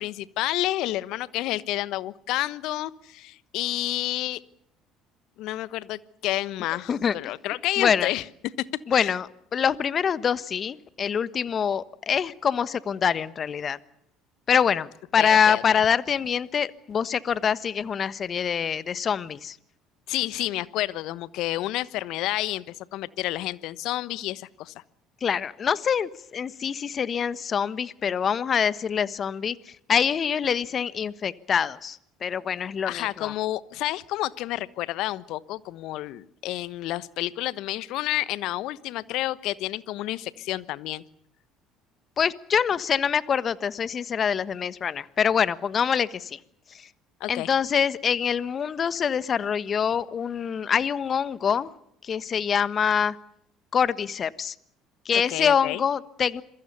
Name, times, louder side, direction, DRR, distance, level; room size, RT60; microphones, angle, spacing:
voice 1, 0.0-4.4 5.4-8.2 8.6-9.1 15.2-15.8 20.1-24.7 32.8-41.0 47.2-47.5 55.3-55.8, left 16 dB, 65° left, 18 dB, 1.1 m, -30 dB
voice 2, 7.8-8.1 8.9-13.8 14.5-19.6 25.2-29.6 29.9-33.3 42.2-46.4 46.7-46.9 47.3-51.7 52.0-53.2 53.7-54.5 55.0-56.4, left 7 dB, 40° left, 17 dB, 1.3 m, -25 dB
27.5 x 22.5 x 6.9 m, 0.75 s
hypercardioid pair, 60°, 0 cm